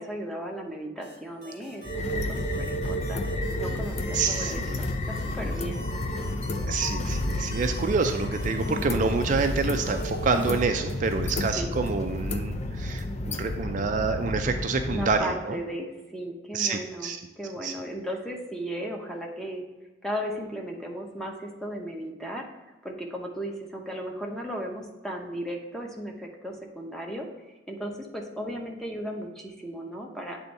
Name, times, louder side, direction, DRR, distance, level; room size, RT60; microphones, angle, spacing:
voice 1, 0.0-4.6 5.1-5.8 8.7-9.1 11.3-11.8 14.9-19.6 20.0-22.5 22.8-27.3 27.7-30.4, equal, ahead, 0 dB, 0.8 m, -36 dB
sound 1, 1.0-10.7, equal, 55° left, 2.0 m, -46 dB
sound 2, 1.8-15.2, left 1 dB, 35° left, 0.4 m, -31 dB
voice 2, 4.1-4.9 6.7-15.6 16.5-17.2 17.6-17.7, right 4 dB, 45° right, 6 dB, 0.4 m, -27 dB
8.2 x 3.5 x 4.1 m, 1.1 s
head